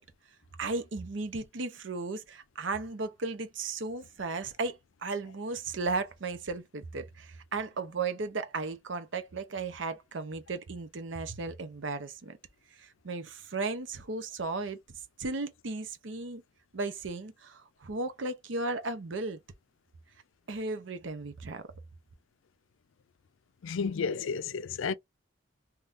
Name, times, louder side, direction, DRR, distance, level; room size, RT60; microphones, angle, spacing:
voice 1, 0.6-12.4 12.7-14.8 15.2-16.4 16.7-19.4 20.5-21.6, right 3 dB, 70° right, 0.7 m, -35 dB
voice 2, 23.6-24.9, left 5 dB, 85° left, 0.4 m, -32 dB
3.6 x 2.9 x 2.5 m
head